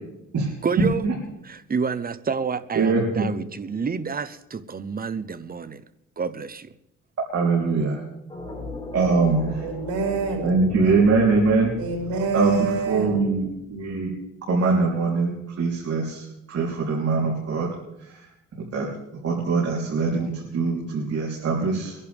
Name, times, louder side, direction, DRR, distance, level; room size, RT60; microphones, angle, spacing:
voice 1, 0.6-1.0 1.4-5.8 6.2-6.7, right 5 dB, 30° right, 14 dB, 0.9 m, -29 dB
voice 2, 2.7-3.2 7.3-8.0 8.9-9.5 10.4-11.7 12.3-14.1 14.5-17.7 18.1-18.2 18.6-18.9 19.2-21.9, right 4 dB, 50° right, -4 dB, 3.7 m, -22 dB
sound 1, 8.3-14.1, left 2 dB, 15° left, 4.1 m, -38 dB
voice 3, 9.6-10.5 11.8-13.2, right 5 dB, 80° right, 1 dB, 5.3 m, -27 dB
24.5 x 11.0 x 3.6 m, 0.87 s
cardioid pair, 90°, 30 cm